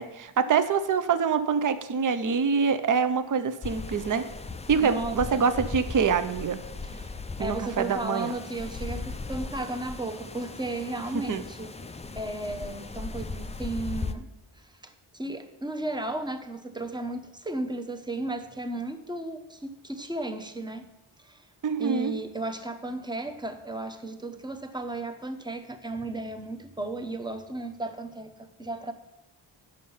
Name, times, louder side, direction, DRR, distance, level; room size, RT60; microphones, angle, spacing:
voice 1, 0.0-4.3 4.7-6.6 7.4-8.3 11.1-11.4 21.6-22.1, right 6 dB, 40° right, 11 dB, 0.6 m, -25 dB
sound 1, 3.6-14.1, left 3 dB, 15° left, 0.3 m, -38 dB
voice 2, 4.8-5.5 6.8-11.7 12.2-14.3 14.6-20.9 21.2-21.5 21.8-28.9, right 2 dB, 10° right, 7 dB, 0.8 m, -35 dB
9.8 x 6.5 x 5.5 m, 0.91 s
wide cardioid pair, 105°, 50 cm